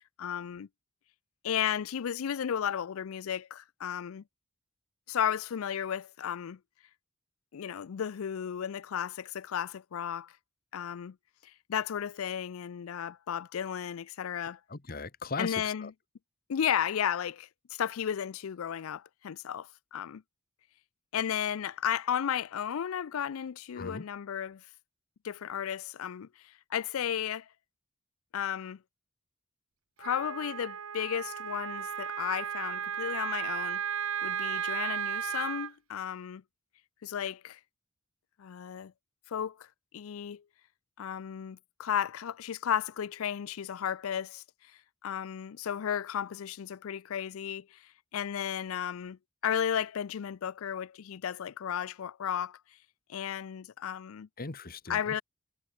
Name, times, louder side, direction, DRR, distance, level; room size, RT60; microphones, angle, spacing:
voice 1, 0.2-0.7 1.4-4.2 5.1-6.6 7.5-10.3 10.7-11.2 11.7-14.6 15.4-15.9 16.5-20.2 21.1-24.6 25.2-27.5 28.3-28.8 30.0-33.8 34.2-36.4 37.0-37.6 38.4-38.9 39.3-39.7 39.9-40.4 41.0-44.4 45.0-47.8 48.1-52.6 53.1-54.3 54.9-55.2, left 9 dB, 80° left, 0.4 m, -34 dB
voice 2, 14.7-15.9 23.8-24.1 54.4-55.2, left 3 dB, 45° left, 1.4 m, -39 dB
Wind instrument woodwind instrument, 30.0-35.7, right 8 dB, 85° right, 0.9 m, -34 dB
head